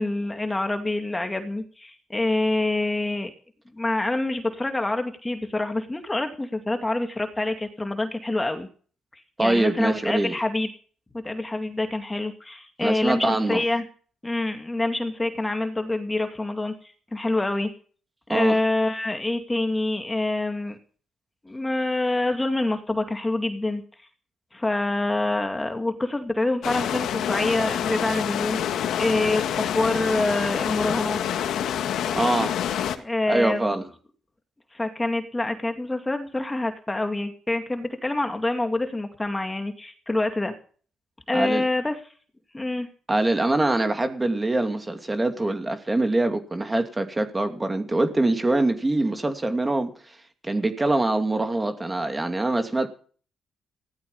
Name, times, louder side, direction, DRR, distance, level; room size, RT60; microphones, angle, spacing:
voice 1, 0.0-3.3 3.7-8.7 9.1-10.7 11.1-13.8 14.2-16.7 17.1-17.7 18.3-20.8 21.4-23.8 24.5-31.2 33.0-33.7 34.7-40.5 41.3-42.0 42.5-42.9, left 2 dB, 15° left, 6 dB, 2.5 m, -26 dB
voice 2, 9.4-10.4 12.8-13.6 18.3-18.5 32.2-32.6 33.3-33.8 41.3-41.6 43.1-49.9 50.4-52.9, right 2 dB, 20° right, 7 dB, 2.6 m, -24 dB
sound 1, 26.6-33.0, left 9 dB, 75° left, 1.8 m, -27 dB
16.5 x 13.0 x 5.6 m, 0.41 s
cardioid pair, 90°, 0 cm